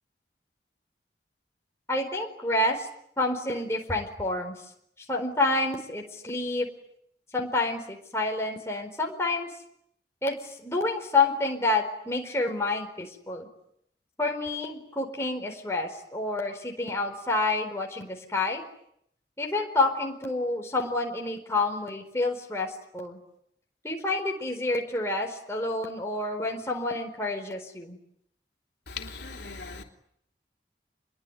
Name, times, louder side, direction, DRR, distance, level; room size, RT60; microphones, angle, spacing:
voice 1, 1.9-2.9 3.2-4.6 5.1-6.7 7.3-9.5 10.2-13.5 14.2-18.6 19.4-23.2 23.8-28.0, left 2 dB, 15° left, 1 dB, 4.4 m, -28 dB
voice 2, 28.9-29.8, left 4 dB, 75° left, 3 dB, 3.3 m, -39 dB
27.5 x 22.5 x 9.9 m, 0.75 s
head